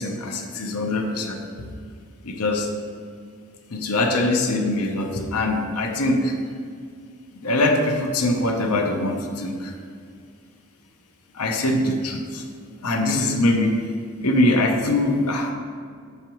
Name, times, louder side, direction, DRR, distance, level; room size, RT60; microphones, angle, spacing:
voice 1, 0.0-1.4 2.2-2.7 3.7-6.4 7.4-9.7 11.3-12.4 12.8-13.8 14.2-15.5, left 1 dB, 85° left, 3 dB, 0.9 m, -22 dB
8.2 x 6.9 x 3.1 m, 2.2 s
head